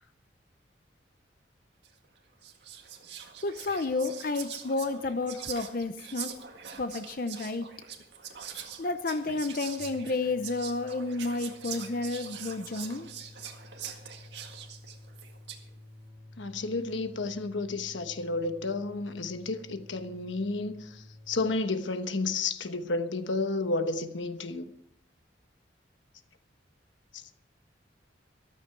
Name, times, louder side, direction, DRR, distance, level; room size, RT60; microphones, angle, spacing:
Whispering, 1.8-2.1 2.4-15.7, right 8 dB, 70° right, 1.8 m, -43 dB
voice 1, 3.4-6.4 6.8-7.7 8.8-13.1, left 3 dB, 50° left, 0.6 m, -31 dB
sound 1, 9.7-21.6, left 1 dB, 25° right, 2.1 m, -51 dB
voice 2, 16.4-20.7 21.3-24.7, left 3 dB, 90° left, 1.2 m, -31 dB
14.0 x 13.0 x 4.6 m
head